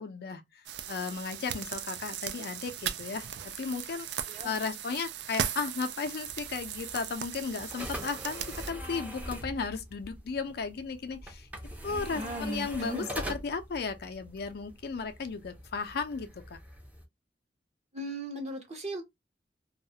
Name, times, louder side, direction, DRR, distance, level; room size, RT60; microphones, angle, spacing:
voice 1, 0.0-11.5 11.8-13.0 13.3-16.6, left 5 dB, 60° left, 0.4 m, -35 dB
sound 1, 0.6-8.7, right 9 dB, 70° right, 0.3 m, -38 dB
sound 2, 6.2-17.0, equal, 10° right, 0.5 m, -43 dB
voice 2, 12.1-13.1 17.9-19.0, right 1 dB, 40° right, 0.7 m, -37 dB
2.3 x 2.1 x 2.6 m
head